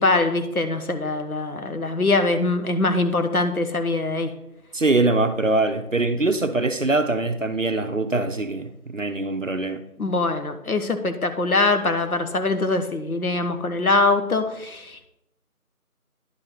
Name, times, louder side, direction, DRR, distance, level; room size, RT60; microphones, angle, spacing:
voice 1, 0.0-4.3 10.0-15.1, left 2 dB, 70° left, 8 dB, 1.0 m, -23 dB
voice 2, 4.7-9.8, right 2 dB, 60° right, 9 dB, 0.6 m, -23 dB
10.5 x 4.2 x 4.0 m, 0.84 s
figure-of-eight pair, 175°, 45 cm